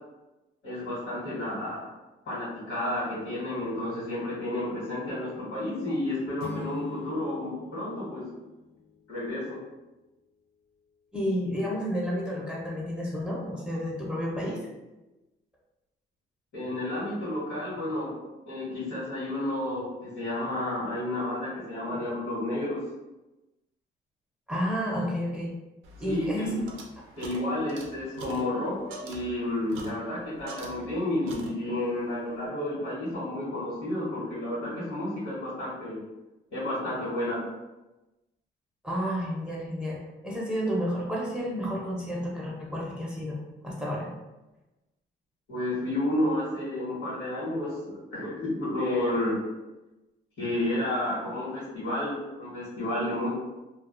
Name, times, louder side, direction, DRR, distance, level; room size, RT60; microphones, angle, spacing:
voice 1, 0.6-1.9 2.2-8.3 9.1-9.6 16.5-18.1 18.4-22.8 26.0-26.6 27.2-36.0 36.5-37.4 45.5-49.4 50.4-53.3, left 1 dB, 70° left, -9 dB, 1.2 m, -31 dB
sound 1, 6.4-9.2, left 5 dB, 55° left, 0.5 m, -43 dB
voice 2, 11.1-14.6 24.5-25.5 26.0-26.5 38.8-44.1, equal, 5° right, -4 dB, 0.6 m, -31 dB
sound 2, 25.8-31.0 31.3-31.9, right 3 dB, 90° right, 0.4 m, -45 dB
2.3 x 2.2 x 2.4 m, 1.1 s
cardioid pair, 90°, 20 cm